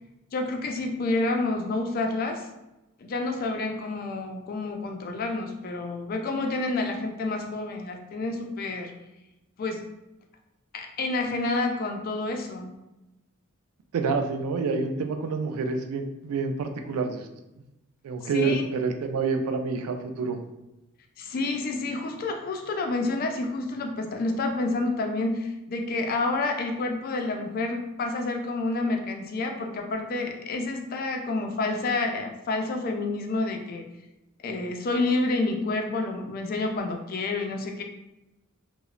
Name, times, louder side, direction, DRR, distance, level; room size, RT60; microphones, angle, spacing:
voice 1, 0.3-2.5 3.0-8.9 9.6-9.9 10.7-12.8 18.3-18.6 21.2-33.8 34.4-37.8, left 2 dB, 45° left, 3 dB, 0.3 m, -29 dB
voice 2, 13.9-17.3 18.0-20.4, right 4 dB, 85° right, 6 dB, 0.3 m, -28 dB
3.0 x 2.0 x 2.3 m, 0.94 s
head